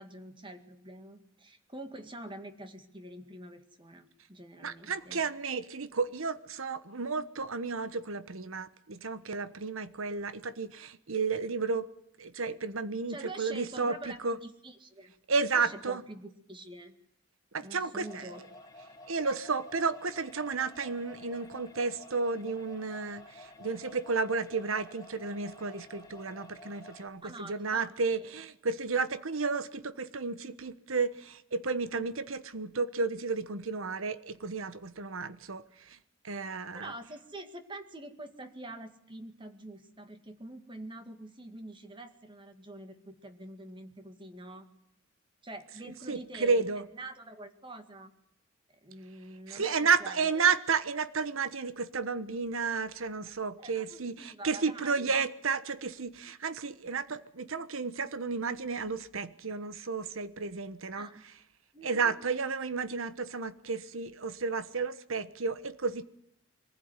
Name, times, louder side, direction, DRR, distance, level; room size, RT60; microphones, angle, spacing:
voice 1, 0.0-5.2 13.1-15.1 15.5-16.9 17.6-18.4 19.2-19.3 27.2-28.2 36.7-44.7 45.4-48.1 48.8-50.4 53.6-55.1 60.9-61.2 61.7-62.2, right 1 dB, 25° right, 2.0 m, -46 dB
voice 2, 4.6-11.9 12.2-13.9 14.2-14.4 15.3-16.0 17.5-18.2 19.1-36.0 36.2-36.9 46.1-46.9 49.5-61.1 61.8-66.1, right 4 dB, 80° right, 1.2 m, -32 dB
sound 1, 18.0-27.1, left 1 dB, 20° left, 2.6 m, -51 dB
23.5 x 15.0 x 9.7 m
head